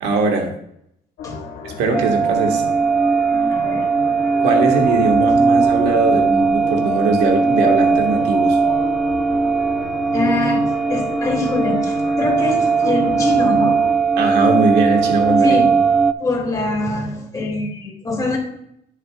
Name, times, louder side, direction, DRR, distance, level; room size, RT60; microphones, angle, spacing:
voice 1, 0.0-0.5 1.6-2.7 4.4-8.6 14.2-15.7, right 3 dB, 90° right, 3 dB, 1.6 m, -20 dB
sound 1, 1.2-13.9, left 6 dB, 80° left, 1.7 m, -33 dB
sound 2, 1.9-16.1, right 4 dB, ahead, 0.3 m, -18 dB
voice 2, 3.5-3.9 10.1-13.8 15.4-15.8 16.2-18.4, left 2 dB, 20° left, -1 dB, 2.5 m, -24 dB
11.0 x 6.6 x 2.4 m, 0.73 s
cardioid pair, 110°, 17 cm